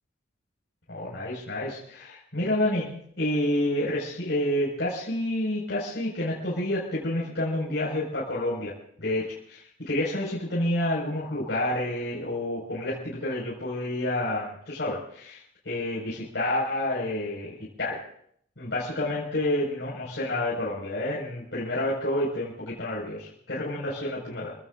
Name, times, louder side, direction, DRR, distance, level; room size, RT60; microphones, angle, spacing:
voice 1, 0.9-8.7 9.0-18.0 18.6-24.5, left 1 dB, 70° left, -7 dB, 5.4 m, -29 dB
30.0 x 16.5 x 2.6 m, 0.65 s
head